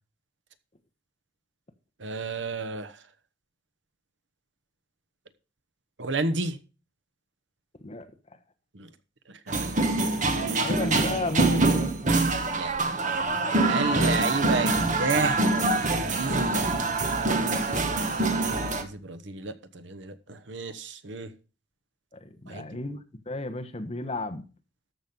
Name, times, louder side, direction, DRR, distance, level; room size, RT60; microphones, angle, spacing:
voice 1, 2.0-2.9 6.0-6.6 8.8-8.9 9.5-9.7 10.3-10.7 12.5-12.7 13.6-15.6 15.8-16.5 18.7-21.3 22.5-22.7, right 3 dB, 70° right, 1.1 m, -31 dB
sound 1, 9.5-18.8, right 2 dB, 40° right, 1.3 m, -25 dB
voice 2, 10.5-12.1 13.8-14.2 17.4-17.6 22.2-23.0 23.3-24.4, left 2 dB, 30° left, 1.2 m, -33 dB
13.5 x 6.2 x 5.3 m
head